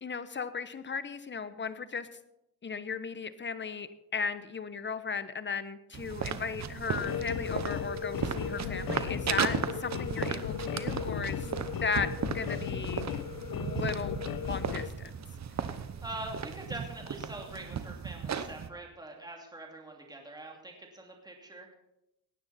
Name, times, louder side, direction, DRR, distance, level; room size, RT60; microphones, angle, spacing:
voice 1, 0.0-2.1 2.6-11.5 11.8-13.1 13.5-15.1, left 5 dB, 25° left, 13 dB, 1.0 m, -36 dB
sound 1, 5.9-18.7, right 7 dB, 40° right, 1.0 m, -36 dB
sound 2, 7.0-14.9, left 8 dB, 55° left, 0.9 m, -36 dB
voice 2, 16.0-21.7, right 2 dB, 10° right, 1 dB, 2.8 m, -44 dB
18.0 x 9.6 x 4.2 m, 0.87 s
cardioid pair, 90°, 41 cm